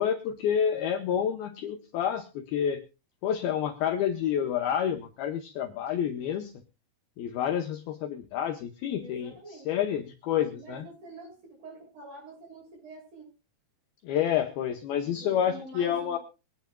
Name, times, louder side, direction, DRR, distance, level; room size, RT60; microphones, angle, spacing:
voice 1, 0.0-2.8 3.2-6.5 7.2-9.3 9.7-10.8 14.0-16.2, left 9 dB, 75° left, 4 dB, 2.4 m, -29 dB
voice 2, 9.0-9.7 10.6-13.3 15.0-16.2, right 2 dB, 50° right, 1 dB, 7.8 m, -46 dB
24.0 x 9.5 x 2.3 m, 0.30 s
omnidirectional pair, 5.2 m